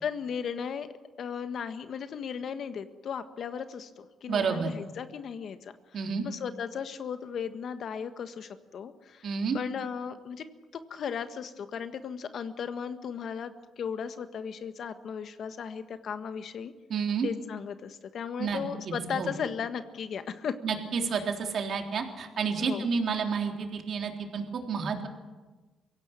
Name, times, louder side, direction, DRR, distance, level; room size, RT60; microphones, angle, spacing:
voice 1, 0.0-0.9 1.2-5.7 6.2-9.3 9.5-10.5 10.9-16.7 17.2-20.6 22.6-22.8, left 7 dB, 60° left, 10 dB, 1.5 m, -36 dB
voice 2, 4.3-4.7 5.9-6.3 9.2-9.6 16.9-17.3 18.4-19.3 20.6-25.1, right 5 dB, 60° right, 3 dB, 3.5 m, -30 dB
23.5 x 16.5 x 9.0 m, 1.2 s
cardioid pair, 90°, 0 cm